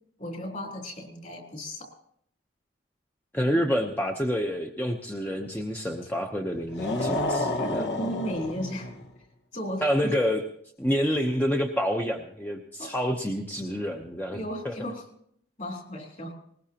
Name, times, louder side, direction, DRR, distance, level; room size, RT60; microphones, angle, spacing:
voice 1, 0.2-1.9 6.9-7.1 7.6-8.9 9.5-10.1 12.8-13.0 14.3-15.1 15.6-16.3, equal, 45° left, 1 dB, 3.6 m, -35 dB
voice 2, 3.3-7.8 9.8-10.4 10.8-14.8, equal, 10° left, 2 dB, 0.8 m, -28 dB
sound 1, 6.7-9.1, left 2 dB, 65° left, 1.4 m, -29 dB
20.5 x 20.0 x 2.9 m, 0.69 s
head